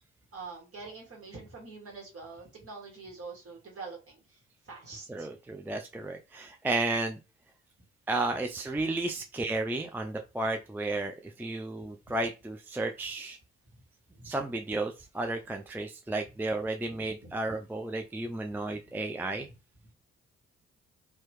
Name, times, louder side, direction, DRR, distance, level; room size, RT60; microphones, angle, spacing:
voice 1, 0.3-5.3 14.1-14.3 17.2-17.3, right 4 dB, 40° right, 1.8 m, -45 dB
voice 2, 5.1-7.2 8.1-13.4 14.2-19.5, right 2 dB, 5° right, 0.4 m, -33 dB
3.0 x 2.8 x 3.2 m
hypercardioid pair, 40°, 33 cm